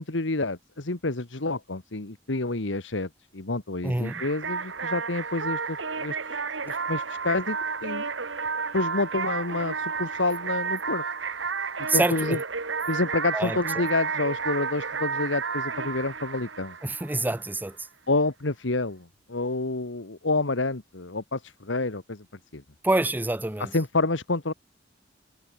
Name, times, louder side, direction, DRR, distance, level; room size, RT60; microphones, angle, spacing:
voice 1, 0.0-7.6 7.8-8.1 8.7-11.0 11.9-12.4 12.9-16.7 18.1-22.2 22.5-22.6 23.6-24.5, left 2 dB, 75° left, 1.6 m, -28 dB
voice 2, 3.8-4.2 11.9-12.4 13.3-13.6 16.8-17.8 22.8-23.7, right 2 dB, 10° right, 0.6 m, -26 dB
sound 1, 4.0-17.5, right 5 dB, 75° right, 2.0 m, -31 dB
head